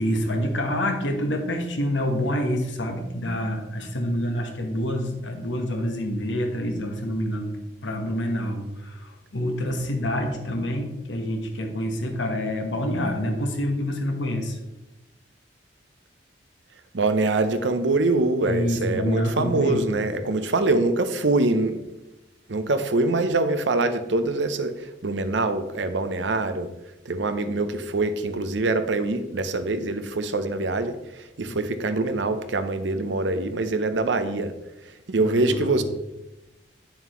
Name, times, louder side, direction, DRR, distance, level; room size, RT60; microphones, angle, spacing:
voice 1, 0.0-7.5 7.8-14.6 18.4-20.0 31.5-31.6 35.2-35.8, equal, 85° left, 4 dB, 1.3 m, -27 dB
voice 2, 16.9-21.8 22.5-26.7 27.1-31.0 31.4-34.5 35.1-35.8, right 2 dB, 75° right, 10 dB, 0.7 m, -24 dB
8.6 x 7.2 x 3.1 m, 0.97 s
head